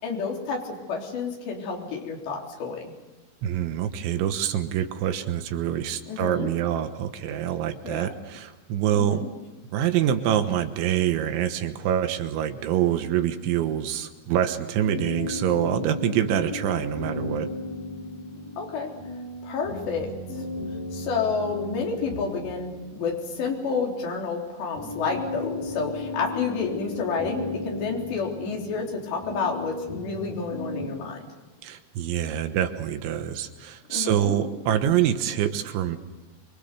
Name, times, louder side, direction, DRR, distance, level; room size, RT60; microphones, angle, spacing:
voice 1, 0.0-2.8 6.1-6.5 7.8-8.1 9.0-9.3 18.6-18.9 19.4-20.1 20.4-20.5 20.9-31.2 33.9-34.5, left 5 dB, 70° left, -1 dB, 5.9 m, -30 dB
voice 2, 3.4-9.2 9.7-17.5 31.6-36.0, right 10 dB, 85° right, 8 dB, 3.6 m, -25 dB
sound 1, 14.8-30.9, left 2 dB, 45° left, 8.9 m, -36 dB
27.5 x 24.0 x 6.8 m, 1.2 s
omnidirectional pair, 5.3 m